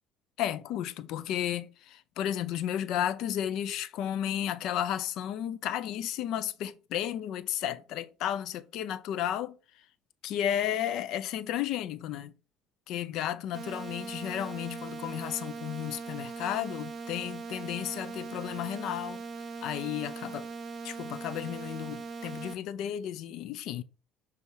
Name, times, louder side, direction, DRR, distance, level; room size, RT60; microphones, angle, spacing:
voice 1, 0.4-9.6 10.2-12.3 12.9-19.2 19.6-20.5 20.8-23.8, left 11 dB, 70° left, 0.6 m, -33 dB
sound 1, 13.5-22.5, right 4 dB, 35° right, 0.8 m, -40 dB
6.8 x 3.5 x 4.7 m
cardioid pair, 100°, 0 cm